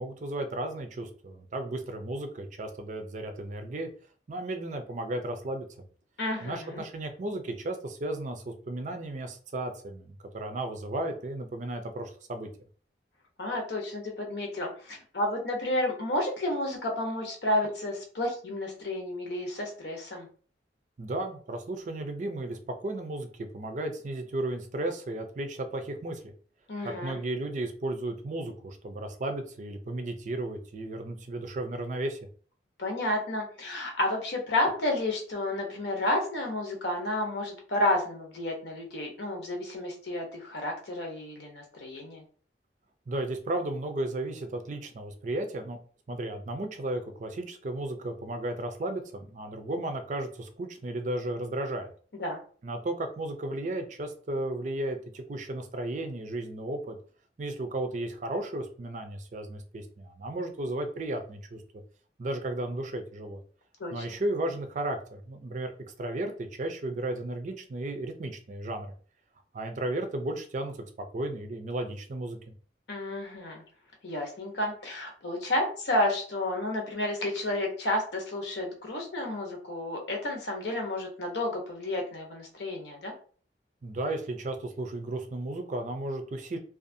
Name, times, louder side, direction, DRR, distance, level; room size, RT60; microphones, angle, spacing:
voice 1, 0.0-3.9 4.3-5.8 6.4-12.5 21.0-26.3 26.8-32.2 43.1-45.8 46.1-51.9 52.6-57.0 57.4-61.6 62.2-63.4 63.9-65.7 66.0-68.9 69.5-70.7 71.1-72.4 83.8-86.6, right 1 dB, 45° right, 6 dB, 0.4 m, -34 dB
voice 2, 6.2-6.8 13.4-20.3 26.7-27.2 32.8-42.2 52.2-52.4 63.8-64.0 72.9-73.6 74.0-83.1, left 1 dB, 75° left, 1 dB, 0.8 m, -31 dB
2.6 x 2.3 x 2.6 m, 0.44 s
head